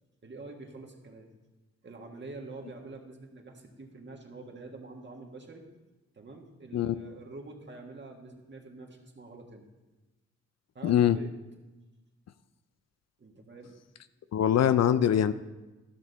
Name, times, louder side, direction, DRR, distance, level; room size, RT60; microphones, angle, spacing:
voice 1, 0.2-1.3 1.8-5.6 6.1-9.6 10.7-11.3 13.2-13.7, right 3 dB, 40° right, 1 dB, 1.7 m, -46 dB
voice 2, 10.8-11.2 14.3-15.3, left 10 dB, 60° left, 13 dB, 0.4 m, -23 dB
13.5 x 6.2 x 4.1 m, 1.1 s
cardioid pair, 70°, 29 cm